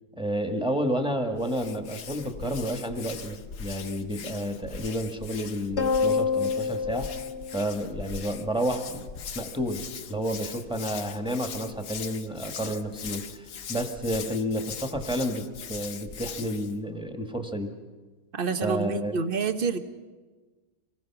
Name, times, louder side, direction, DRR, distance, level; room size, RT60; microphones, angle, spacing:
voice 1, 0.2-7.1 7.5-9.0 9.3-9.8 10.1-17.7 18.6-19.2, equal, 5° right, 5 dB, 1.4 m, -30 dB
Hands, 1.3-16.8, left 7 dB, 65° left, 1.3 m, -40 dB
sound 1, 5.8-8.4, left 5 dB, 45° left, 1.4 m, -27 dB
voice 2, 18.3-19.8, right 5 dB, 40° right, 10 dB, 0.9 m, -27 dB
26.0 x 20.5 x 5.9 m, 1.3 s
omnidirectional pair, 1.7 m